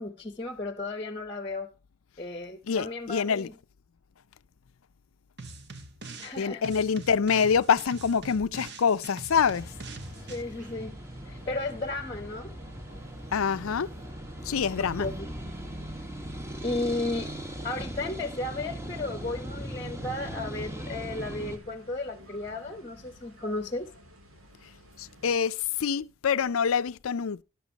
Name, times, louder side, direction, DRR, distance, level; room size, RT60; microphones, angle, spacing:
voice 1, 0.0-1.7 2.2-3.5 6.2-6.6 10.3-10.9 11.3-12.6 14.8-15.3 16.6-17.3 17.6-23.9, left 2 dB, 25° left, 0.9 m, -34 dB
voice 2, 2.6-3.5 6.4-9.7 13.3-13.9 14.4-15.1 16.9-17.0 25.0-27.4, left 6 dB, 80° left, 0.5 m, -26 dB
sound 1, 5.4-6.4 6.6-10.4, right 3 dB, 50° right, 1.3 m, -43 dB
sound 2, 9.3-21.6, right 1 dB, 15° right, 1.4 m, -39 dB
sound 3, 9.7-25.4, equal, 85° right, 3.0 m, -55 dB
13.5 x 11.5 x 2.9 m
head